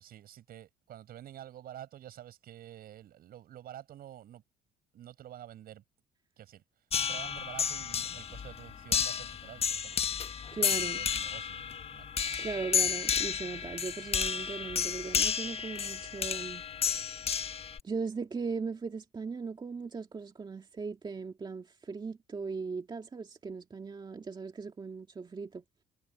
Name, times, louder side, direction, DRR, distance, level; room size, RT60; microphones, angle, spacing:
voice 1, 0.0-4.4 4.9-5.8 6.4-6.6 7.0-12.1, right 11 dB, 60° right, 7.8 m, -49 dB
sound 1, 6.9-17.8, left 7 dB, 35° left, 1.2 m, -32 dB
voice 2, 10.5-11.0 12.4-16.6 17.8-25.6, right 4 dB, 25° right, 2.2 m, -38 dB
cardioid pair, 110°, 17 cm